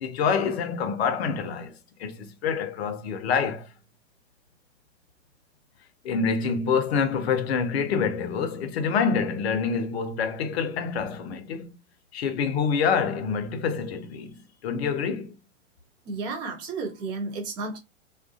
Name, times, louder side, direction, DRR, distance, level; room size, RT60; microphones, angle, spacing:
voice 1, 0.0-3.7 6.0-11.7 12.1-15.3, left 6 dB, 55° left, 0.6 m, -27 dB
voice 2, 16.1-17.8, right 3 dB, 15° right, 0.3 m, -32 dB
2.4 x 2.3 x 2.3 m
figure-of-eight pair, 105°, 39 cm